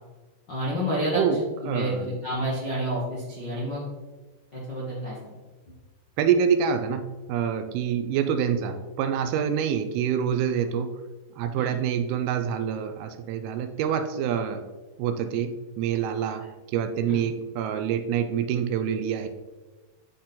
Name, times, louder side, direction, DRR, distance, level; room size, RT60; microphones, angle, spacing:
voice 1, 0.5-3.8 4.5-5.3 11.5-11.7 17.1-17.2, equal, 60° left, -7 dB, 1.1 m, -29 dB
voice 2, 1.6-2.1 6.2-10.9 11.4-14.6 15.0-19.3, right 8 dB, 80° right, 8 dB, 2.4 m, -26 dB
10.0 x 4.3 x 3.9 m, 1.2 s
omnidirectional pair, 4.8 m